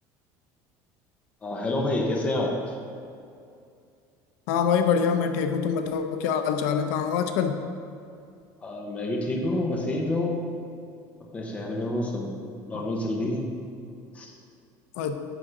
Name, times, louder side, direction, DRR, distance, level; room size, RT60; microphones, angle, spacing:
voice 1, 1.4-2.7 8.6-10.4 11.3-12.3 12.7-13.4 14.1-14.3, left 1 dB, 15° left, 1 dB, 0.9 m, -28 dB
voice 2, 4.5-7.6 12.7-12.8 15.0-15.2, left 7 dB, 90° left, 7 dB, 0.6 m, -25 dB
9.7 x 3.7 x 6.4 m, 2.4 s
cardioid pair, 175°, 9 cm